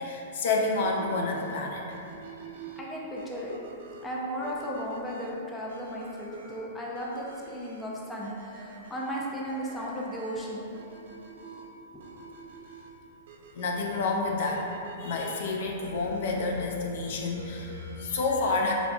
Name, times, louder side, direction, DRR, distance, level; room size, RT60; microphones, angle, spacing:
voice 1, 0.0-1.9 13.5-14.7 15.0-18.7, left 3 dB, 65° left, 0 dB, 0.4 m, -29 dB
sound 1, 0.8-18.2, right 4 dB, 70° right, 0.5 m, -48 dB
voice 2, 2.8-3.5 4.0-10.6 11.9-12.0, equal, 10° left, -4 dB, 0.5 m, -35 dB
3.7 x 3.5 x 2.3 m, 2.7 s
hypercardioid pair, 145°, 0 cm